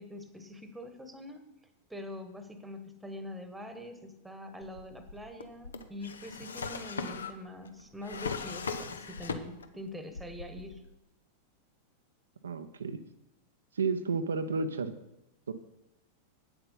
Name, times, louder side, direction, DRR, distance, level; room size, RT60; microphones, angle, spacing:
voice 1, 0.0-1.5 1.9-10.8, left 1 dB, 5° right, 9 dB, 1.3 m, -44 dB
Drawer open or close, 4.6-9.8 10.1-10.9, left 4 dB, 70° left, 0.8 m, -39 dB
voice 2, 12.4-13.0 13.7-14.9 15.5-15.6, right 4 dB, 70° right, 8 dB, 0.6 m, -31 dB
8.9 x 8.0 x 5.5 m, 0.88 s
figure-of-eight pair, 90°, 0 cm